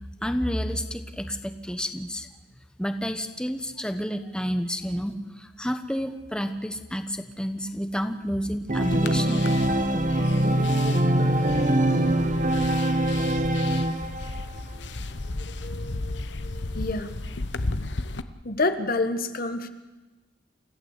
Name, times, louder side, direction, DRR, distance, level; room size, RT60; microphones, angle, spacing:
voice 1, 0.2-2.3 2.8-9.4 9.7-9.8, equal, 5° left, 7 dB, 1.2 m, -30 dB
Organ, 8.7-14.4, right 1 dB, 45° right, 1.6 m, -23 dB
sound 1, 8.8-18.2, left 2 dB, 70° left, 1.1 m, -34 dB
voice 2, 15.4-17.1 18.4-19.7, left 2 dB, 55° left, 9 dB, 1.5 m, -29 dB
29.0 x 15.0 x 8.4 m, 1.2 s
head